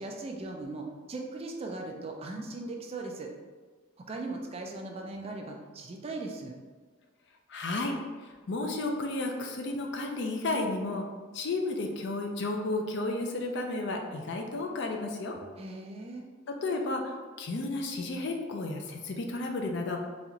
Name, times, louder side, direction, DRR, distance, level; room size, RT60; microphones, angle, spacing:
voice 1, 0.0-3.3 4.0-6.6 15.6-16.2, right 2 dB, 30° right, 1 dB, 0.3 m, -38 dB
voice 2, 7.5-8.0 8.5-11.1 11.3-15.4 16.5-20.0, left 2 dB, 60° left, 2 dB, 0.4 m, -32 dB
4.0 x 2.4 x 2.8 m, 1.4 s
head